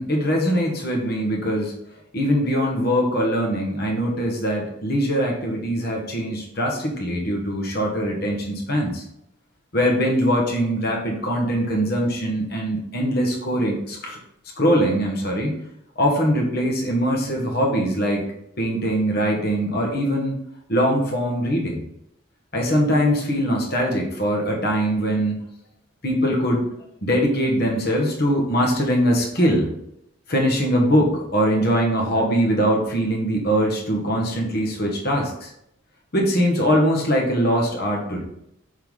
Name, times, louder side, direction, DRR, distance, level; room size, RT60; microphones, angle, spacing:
voice 1, 0.0-1.7 2.1-9.0 9.7-14.2 14.6-15.6 15.9-18.2 18.6-20.4 20.7-21.8 22.5-25.4 26.0-26.7 27.0-29.7 30.3-35.5 36.1-38.2, equal, 45° left, 0 dB, 1.6 m, -22 dB
8.0 x 4.0 x 4.0 m, 0.77 s
head